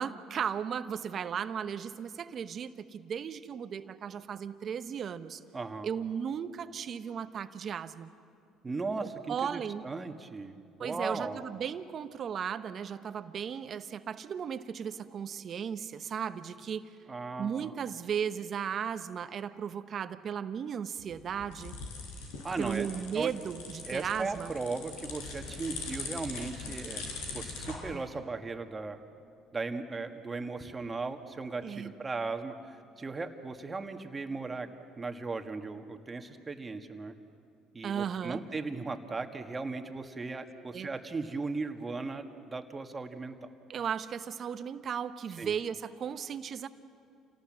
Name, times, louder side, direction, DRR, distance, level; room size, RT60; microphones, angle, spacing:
voice 1, 0.0-5.4 5.8-8.1 9.3-9.8 10.8-16.9 17.4-21.7 22.6-24.5 27.9-28.0 31.6-31.9 37.8-38.4 40.7-40.9 43.7-46.7, right 7 dB, 50° right, 11 dB, 1.0 m, -36 dB
voice 2, 5.5-5.9 8.6-10.5 10.8-11.4 17.1-17.7 22.4-22.9 23.1-23.3 23.9-27.0 27.3-29.0 29.5-34.7 35.0-37.1 37.7-43.5 45.4-45.5, right 3 dB, 25° right, 6 dB, 1.8 m, -37 dB
sound 1, 21.0-27.8, left 4 dB, 85° left, 4.7 m, -42 dB
28.0 x 18.0 x 7.6 m, 2.4 s
supercardioid pair, 75°, 0 cm